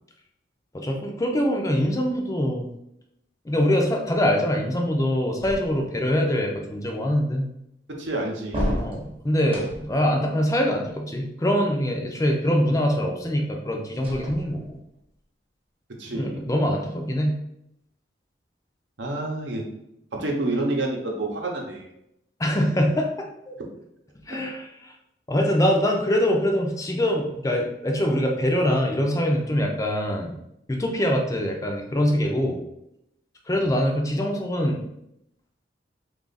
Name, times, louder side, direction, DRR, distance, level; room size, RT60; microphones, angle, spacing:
voice 1, 0.7-2.7 3.5-7.5 8.8-14.8 16.1-17.3 22.4-23.5 24.3-24.9 25.3-30.3 30.7-32.6 33.5-34.8, equal, 20° left, 1 dB, 0.4 m, -24 dB
sound 1, 5.4-6.2 8.5-10.1 14.0-14.9, equal, 30° right, 0.8 m, -32 dB
voice 2, 7.9-8.8 16.0-16.5 19.0-19.6 20.1-21.9 33.5-33.7, right 2 dB, 75° right, 1 dB, 0.8 m, -28 dB
3.2 x 2.4 x 3.9 m, 0.80 s
head